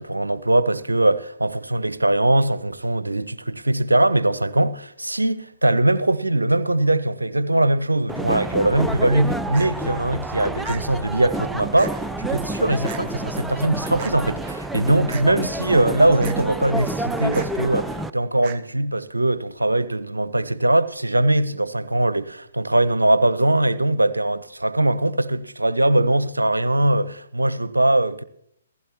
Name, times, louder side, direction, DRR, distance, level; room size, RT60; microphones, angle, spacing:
voice 1, 0.0-28.2, right 1 dB, 80° right, 0.6 m, -21 dB
sound 1, 8.1-18.1, right 2 dB, 5° right, 0.4 m, -29 dB
sound 2, 9.5-9.7 10.6-10.8 11.8-11.9 12.9-13.0 14.0-14.1 15.1-15.3 16.2-16.4 17.3-17.5 18.4-18.6, right 8 dB, 35° right, 0.8 m, -37 dB
15.5 x 15.0 x 2.9 m
figure-of-eight pair, 125°, 0 cm